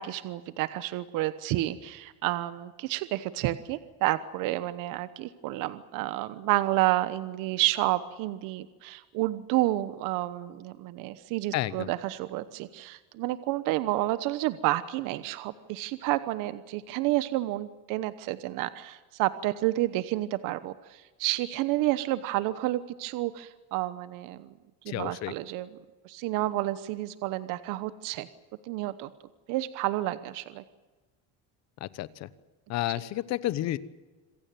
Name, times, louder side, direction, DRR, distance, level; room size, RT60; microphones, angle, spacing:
voice 1, 0.0-24.5 24.8-25.7 26.0-28.3 28.7-29.1 29.5-30.6, right 16 dB, 60° right, 14 dB, 1.1 m, -30 dB
voice 2, 11.5-11.9 24.9-25.3 31.8-32.3 32.7-33.8, left 15 dB, 45° left, 17 dB, 1.0 m, -31 dB
27.0 x 16.5 x 9.1 m, 1.2 s
cardioid pair, 175°, 36 cm